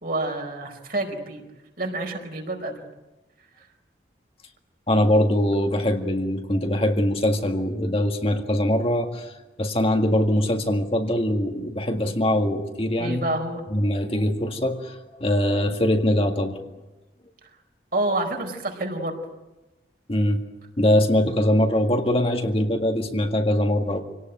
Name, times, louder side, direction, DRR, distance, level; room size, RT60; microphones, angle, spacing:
voice 1, 0.0-1.4 1.8-2.8 3.6-3.7 13.0-13.6 17.9-19.2, right 2 dB, 55° right, 3 dB, 4.6 m, -28 dB
voice 2, 4.9-9.3 9.6-13.2 13.7-16.6 20.1-20.4 20.8-24.0, left 1 dB, 35° left, 4 dB, 1.9 m, -22 dB
27.0 x 18.5 x 9.3 m, 1.1 s
head